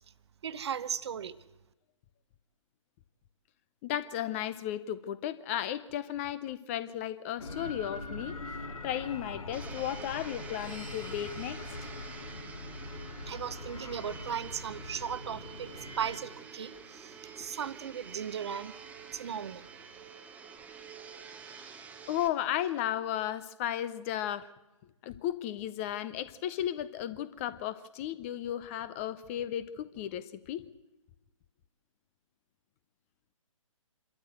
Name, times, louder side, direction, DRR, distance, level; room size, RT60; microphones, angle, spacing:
voice 1, 0.4-1.4 13.3-15.7 16.0-18.7 19.1-19.7, right 8 dB, 50° right, 15 dB, 0.9 m, -37 dB
voice 2, 3.8-8.4 8.8-11.6 22.1-24.5 25.0-30.7, left 11 dB, 25° left, 15 dB, 0.7 m, -34 dB
sound 1, 7.4-16.2, left 2 dB, 75° left, 2.0 m, -42 dB
Domestic sounds home sounds, 9.5-22.3, right 6 dB, 10° right, 0.9 m, -48 dB
25.5 x 13.0 x 7.9 m, 1.0 s
figure-of-eight pair, 135°, 18 cm